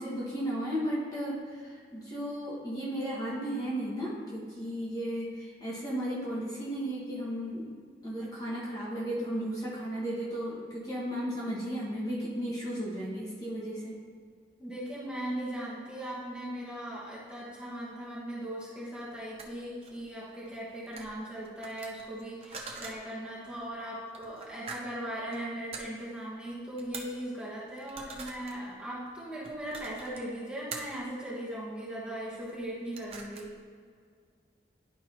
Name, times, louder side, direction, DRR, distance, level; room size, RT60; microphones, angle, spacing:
voice 1, 0.0-7.7 8.0-14.0, equal, 20° left, -7 dB, 1.2 m, -34 dB
voice 2, 14.6-33.5, right 1 dB, 5° right, -8 dB, 1.3 m, -39 dB
sound 1, 19.3-19.5 19.8-20.6 20.9-21.2 21.4-23.0 23.5-23.7 24.1-24.8 25.1-25.4 25.7-25.8 26.5-26.6 26.8-27.2 27.8-28.5 29.4-30.2 30.7-31.0 32.3-32.5 32.8-33.5, right 4 dB, 35° right, 0.6 m, -44 dB
11.0 x 4.6 x 2.9 m, 2.1 s
head